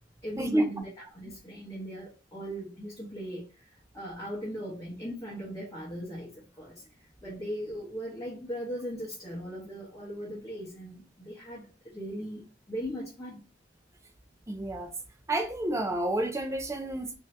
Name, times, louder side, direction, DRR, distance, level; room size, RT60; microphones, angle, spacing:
voice 1, 0.2-3.4 3.9-6.3 6.6-6.8 7.2-13.4, equal, 20° left, 0.8 m, -38 dB
voice 2, 14.5-14.9 15.3-17.2, right 1 dB, 15° right, 0.4 m, -29 dB
2.6 x 2.5 x 3.2 m
head